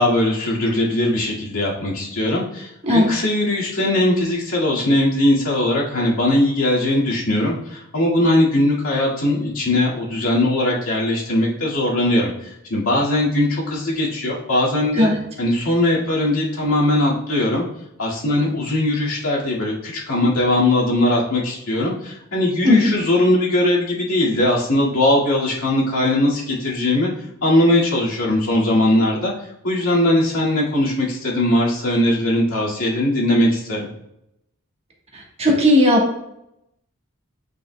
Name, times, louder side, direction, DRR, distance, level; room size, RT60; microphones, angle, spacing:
voice 1, 0.0-12.3 12.7-15.1 15.4-17.6 18.0-27.1 27.4-29.3 29.6-33.9, left 1 dB, 75° left, -6 dB, 2.1 m, -20 dB
voice 2, 2.8-3.1 15.0-15.2 22.6-22.9 35.4-36.2, left 1 dB, 30° right, -1 dB, 1.3 m, -15 dB
8.9 x 5.1 x 2.2 m, 0.81 s
head